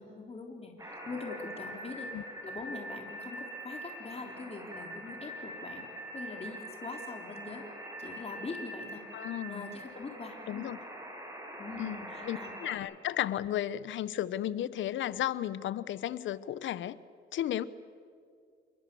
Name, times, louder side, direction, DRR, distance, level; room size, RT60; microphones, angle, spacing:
voice 1, 0.0-2.1 2.4-7.6 8.0-9.0 9.5-10.7 11.6-12.5, left 3 dB, 30° left, 2 dB, 3.6 m, -43 dB
sound 1, 0.8-12.8, right 1 dB, 15° right, 6.4 m, -44 dB
voice 2, 9.1-9.7 10.5-10.8 11.8-17.0 17.3-17.6, left 12 dB, 75° left, 17 dB, 0.9 m, -34 dB
28.0 x 22.5 x 7.0 m, 2.3 s
cardioid pair, 90°, 20 cm